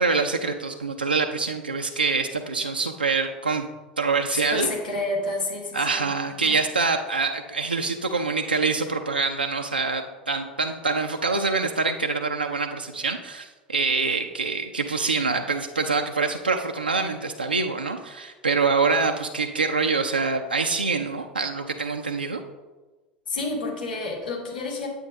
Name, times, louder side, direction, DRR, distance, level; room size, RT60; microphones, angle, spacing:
voice 1, 0.0-3.7 4.0-4.7 5.7-22.4, right 4 dB, 85° right, 3 dB, 0.5 m, -25 dB
voice 2, 4.5-6.1 6.4-6.6 23.3-24.9, left 2 dB, 75° left, -3 dB, 2.6 m, -29 dB
9.0 x 9.0 x 3.6 m, 1.2 s
figure-of-eight pair, 80°, 5 cm